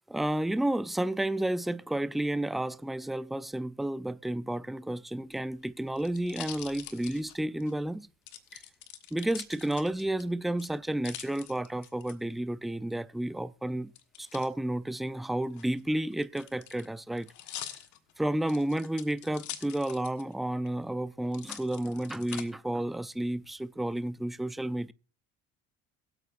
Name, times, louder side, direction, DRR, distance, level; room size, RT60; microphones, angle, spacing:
voice 1, 0.1-8.1 8.5-8.6 9.1-13.9 14.2-17.3 18.2-24.9, right 1 dB, ahead, 0.4 m, -31 dB
sound 1, 5.2-7.7 8.3-10.2 10.6-12.1 14.0-14.5 15.4-20.3 20.7-20.8 21.3-22.4 23.1-23.6, left 11 dB, 70° left, 1.5 m, -45 dB
22.5 x 8.1 x 2.5 m
supercardioid pair, 90°, 31 cm